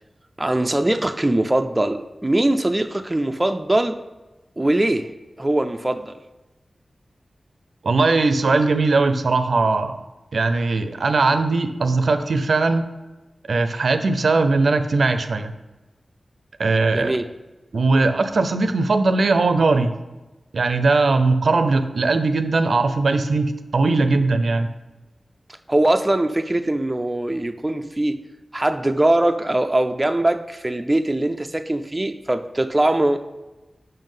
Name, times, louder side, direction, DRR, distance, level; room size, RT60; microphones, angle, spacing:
voice 1, 0.4-4.0 4.6-5.1 5.4-6.2 16.9-17.2 25.7-28.3 28.5-33.2, right 1 dB, 20° right, 7 dB, 0.4 m, -21 dB
voice 2, 7.8-10.0 10.3-12.8 13.5-15.5 16.6-17.1 17.7-20.0 20.5-24.7, right 3 dB, 75° right, 9 dB, 0.5 m, -19 dB
5.5 x 5.5 x 5.4 m, 1.1 s
wide cardioid pair, 110°, 0 cm